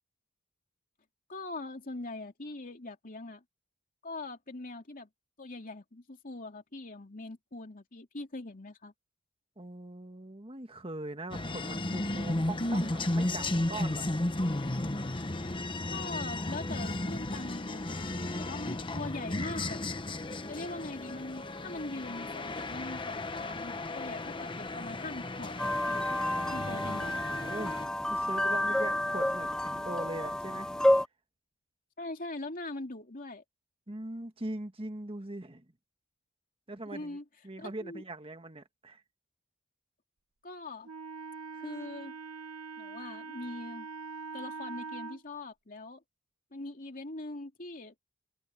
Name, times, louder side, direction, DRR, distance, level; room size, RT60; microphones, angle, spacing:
voice 1, 1.3-3.4 4.0-5.1 5.4-8.9 15.9-19.8 20.5-26.1 26.5-27.3 32.0-33.4 36.9-37.2 37.6-38.0 40.4-40.9 41.5-42.2 42.8-43.9 44.3-46.0 46.5-47.9, left 2 dB, 40° left, 2.8 m, -42 dB
voice 2, 9.6-14.1 26.1-27.8 28.1-30.7 33.9-35.6 36.7-37.2 37.4-39.0, right 2 dB, 25° right, 1.7 m, -41 dB
sound 1, 11.3-27.9, left 1 dB, 20° left, 1.0 m, -34 dB
sound 2, 25.6-31.1, left 1 dB, 5° left, 0.3 m, -30 dB
Wind instrument woodwind instrument, 40.8-45.2, right 5 dB, 85° right, 1.0 m, -43 dB
head